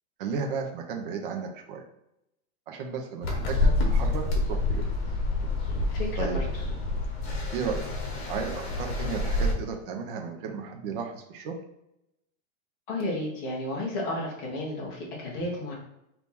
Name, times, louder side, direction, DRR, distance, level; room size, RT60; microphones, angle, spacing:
voice 1, 0.2-1.8 2.7-4.9 6.2-6.4 7.5-7.9 8.3-11.6, right 5 dB, 45° right, 2 dB, 0.7 m, -34 dB
sound 1, 3.2-9.5, left 2 dB, 50° left, 1.2 m, -27 dB
voice 2, 5.9-6.6 12.9-15.7, left 1 dB, 15° left, -3 dB, 0.5 m, -32 dB
4.1 x 3.0 x 3.6 m, 0.84 s
supercardioid pair, 180°, 39 cm